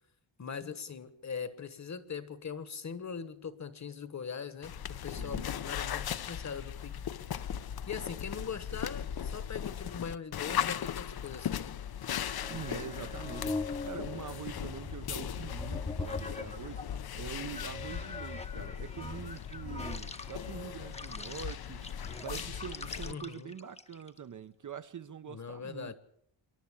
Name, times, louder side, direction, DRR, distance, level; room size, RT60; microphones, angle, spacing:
voice 1, 0.4-7.0 7.9-11.7 23.1-23.5 25.3-25.9, left 6 dB, 35° left, 1.3 m, -41 dB
sound 1, 4.6-23.1, left 9 dB, 50° left, 0.7 m, -38 dB
voice 2, 5.2-5.5 12.5-16.9 17.2-21.9 22.2-25.9, right 8 dB, 40° right, 0.7 m, -44 dB
sound 2, 12.0-17.0 17.5-24.2, left 3 dB, 15° left, 0.9 m, -42 dB
26.5 x 11.5 x 8.4 m
wide cardioid pair, 165°, 47 cm